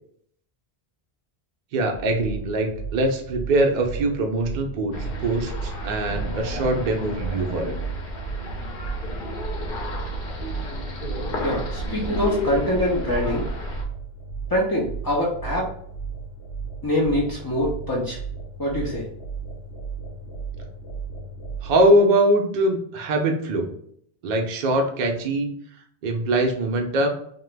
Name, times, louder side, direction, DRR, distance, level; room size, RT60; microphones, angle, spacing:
voice 1, 1.7-4.9 5.2-7.7 21.6-23.7 24.2-25.5 26.0-27.1, right 1 dB, 55° right, 3 dB, 0.6 m, -22 dB
sound 1, 1.9-21.8, right 5 dB, 90° left, 0.9 m, -35 dB
sound 2, 4.9-13.8, left 1 dB, 60° left, 0.7 m, -31 dB
voice 2, 11.4-13.5 14.5-15.7 16.8-18.2 18.6-19.0, left 1 dB, 35° left, -5 dB, 0.3 m, -24 dB
2.9 x 2.2 x 3.2 m, 0.66 s
omnidirectional pair, 1.1 m